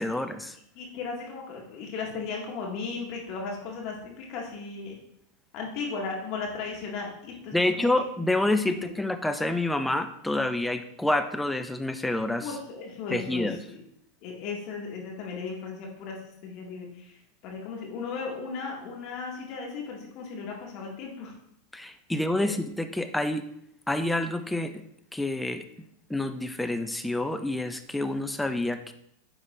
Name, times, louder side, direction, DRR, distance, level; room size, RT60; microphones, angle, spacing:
voice 1, 0.0-0.6 7.5-12.5 13.1-13.6 21.7-23.4 23.9-24.8 25.1-25.6 26.1-28.9, left 1 dB, 5° left, 8 dB, 0.5 m, -28 dB
voice 2, 0.7-5.0 5.5-7.9 8.7-8.9 12.4-13.8 14.2-16.2 16.4-17.2 17.4-21.3 22.4-22.5, left 4 dB, 50° left, -1 dB, 1.9 m, -36 dB
9.5 x 3.7 x 3.2 m, 0.73 s
hypercardioid pair, 90°, 0 cm